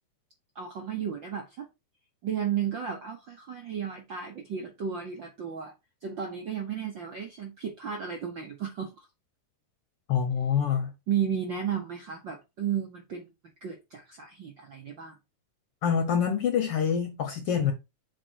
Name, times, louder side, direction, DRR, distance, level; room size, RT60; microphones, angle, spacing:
voice 1, 0.5-1.7 2.2-5.7 6.0-9.1 10.7-10.8 11.1-13.3 13.6-15.2, right 8 dB, 65° right, 1.2 m, -33 dB
voice 2, 10.1-10.9 15.8-17.7, left 7 dB, 65° left, 1.5 m, -26 dB
7.7 x 3.9 x 4.6 m
omnidirectional pair, 3.6 m